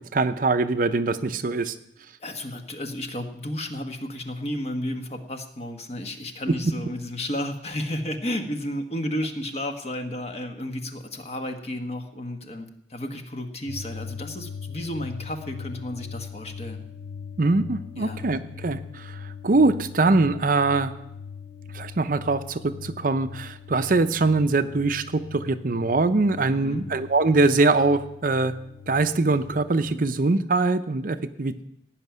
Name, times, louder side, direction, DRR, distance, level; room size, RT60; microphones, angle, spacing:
voice 1, 0.1-1.8 6.5-6.6 17.4-20.9 21.7-28.5 28.9-31.7, right 3 dB, 50° right, 10 dB, 0.6 m, -23 dB
voice 2, 2.2-16.8 18.0-18.2 26.5-26.9, left 1 dB, 35° left, 5 dB, 1.3 m, -32 dB
sound 1, 13.7-29.9, left 6 dB, 80° left, 3.9 m, -40 dB
16.5 x 5.9 x 9.3 m, 0.80 s
head